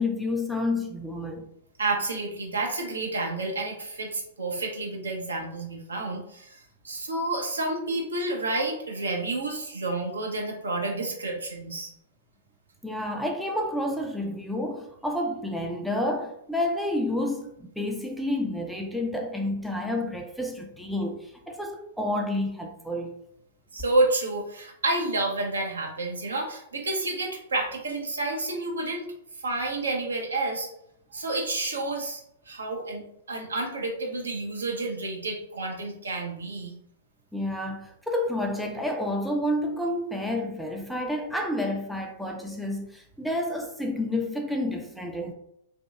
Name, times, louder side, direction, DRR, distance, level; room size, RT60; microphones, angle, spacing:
voice 1, 0.0-1.5 12.8-23.1 37.3-45.3, left 1 dB, ahead, 0.3 m, -29 dB
voice 2, 1.8-11.9 23.7-29.1 29.4-30.7 31.1-36.7, right 2 dB, 75° right, 0.6 m, -30 dB
2.8 x 2.1 x 2.3 m
figure-of-eight pair, 105°, 0 cm